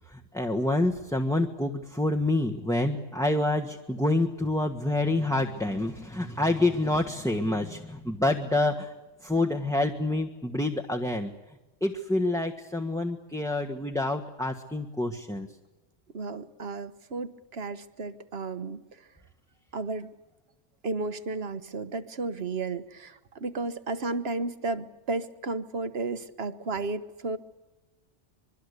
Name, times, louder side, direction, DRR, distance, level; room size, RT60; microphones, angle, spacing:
voice 1, 0.1-8.9 9.2-11.3 11.8-15.5, left 2 dB, 5° left, 3 dB, 1.4 m, -27 dB
voice 2, 16.1-19.1 19.7-20.1 20.8-27.4, right 3 dB, 55° right, 12 dB, 1.5 m, -33 dB
25.0 x 23.5 x 8.3 m, 1.1 s
omnidirectional pair, 1.2 m